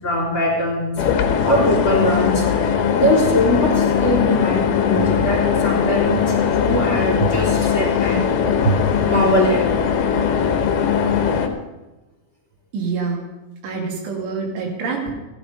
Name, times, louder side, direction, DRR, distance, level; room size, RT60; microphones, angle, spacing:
voice 1, 0.0-1.0 1.4-2.4 2.9-8.7 9.0-9.6, equal, 30° left, -3 dB, 3.8 m, -21 dB
sound 1, 1.0-11.5, left 7 dB, 70° left, 2.8 m, -20 dB
voice 2, 12.7-13.3 13.6-15.1, right 4 dB, 90° right, 0 dB, 4.9 m, -26 dB
16.0 x 11.0 x 5.5 m, 1.1 s
omnidirectional pair, 5.3 m